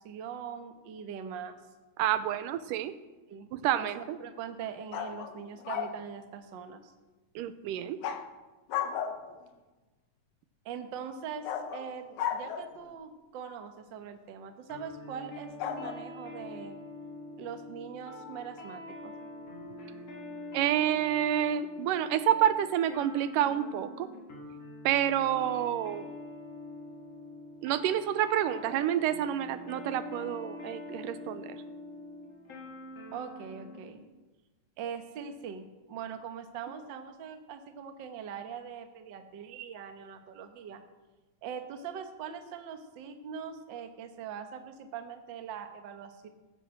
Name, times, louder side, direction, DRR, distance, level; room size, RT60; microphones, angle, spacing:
voice 1, 0.0-1.6 3.3-3.5 3.8-6.9 10.6-11.5 11.7-12.0 12.3-16.8 17.4-19.1 33.1-34.0 34.8-40.8 41.4-46.3, right 7 dB, 60° right, 7 dB, 1.2 m, -42 dB
voice 2, 2.0-2.9 3.5-4.2 7.4-8.0 20.5-24.1 24.9-26.1 27.6-31.6, right 11 dB, 90° right, 12 dB, 2.3 m, -28 dB
sound 1, 4.9-6.0 8.0-8.3 8.7-9.4 11.4-12.9 15.6-15.9, left 8 dB, 70° left, 2.1 m, -34 dB
sound 2, 14.7-33.8, left 2 dB, 50° left, 4.1 m, -44 dB
14.5 x 9.1 x 6.5 m, 1.2 s
omnidirectional pair, 3.7 m